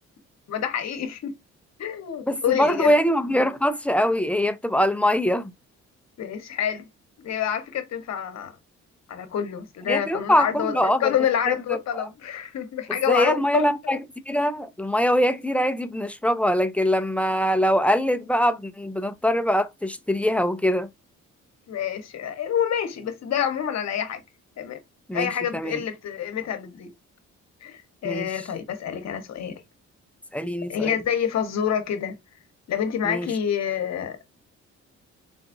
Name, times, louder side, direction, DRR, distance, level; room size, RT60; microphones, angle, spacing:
voice 1, 0.5-1.3 1.8-2.9 6.2-6.9 7.2-8.5 9.1-14.0 21.7-24.2 24.6-24.8 25.1-26.9 27.6-29.6 30.7-32.2 32.7-34.2, left 9 dB, 60° left, 0.9 m, -27 dB
voice 2, 2.3-5.5 9.9-11.1 11.5-12.0 13.1-20.9 25.1-25.8 28.0-28.3 30.3-31.0 33.0-33.3, equal, 5° left, 0.3 m, -23 dB
4.0 x 2.4 x 2.5 m
cardioid pair, 90°, 30 cm